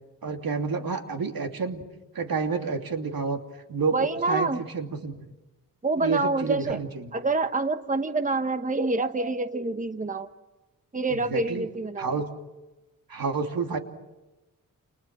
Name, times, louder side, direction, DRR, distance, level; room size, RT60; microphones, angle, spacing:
voice 1, 0.2-1.8 2.1-3.4 3.7-5.3 6.0-7.1 11.1-11.7 12.0-12.3 13.1-13.8, right 4 dB, 90° right, 5 dB, 2.8 m, -29 dB
voice 2, 3.9-4.6 5.8-6.8 7.1-10.3 10.9-12.1, right 3 dB, 25° right, 9 dB, 1.1 m, -27 dB
30.0 x 29.5 x 6.1 m, 1.1 s
wide cardioid pair, 145°, 34 cm